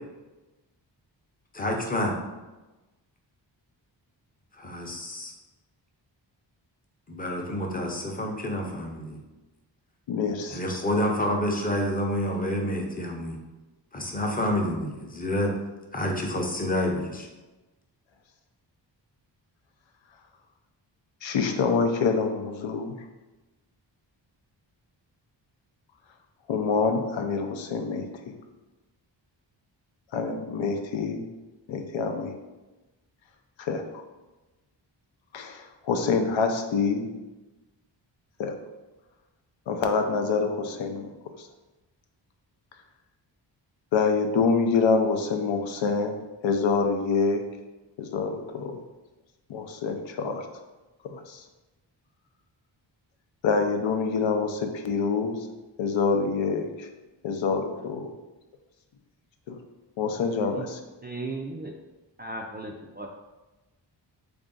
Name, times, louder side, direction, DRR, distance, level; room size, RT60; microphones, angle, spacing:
voice 1, 1.5-2.2 4.6-5.3 7.1-9.2 10.5-13.4 13.9-15.5 15.9-17.3, left 1 dB, 20° left, 1 dB, 0.6 m, -28 dB
voice 2, 10.1-10.6 21.2-23.0 26.5-28.3 30.1-31.3 31.7-32.4 33.6-34.0 35.3-37.1 38.4-38.5 39.7-41.1 41.4-41.5 43.9-47.5 48.0-48.8 49.5-50.4 51.0-51.4 53.4-55.5 55.8-56.9 57.2-58.1 59.5-59.6 60.0-60.8, left 4 dB, 80° left, 5 dB, 0.6 m, -26 dB
voice 3, 61.0-61.7 62.2-63.1, right 2 dB, 25° right, 1 dB, 0.3 m, -36 dB
3.4 x 2.6 x 3.7 m, 1.1 s
cardioid pair, 70°, 46 cm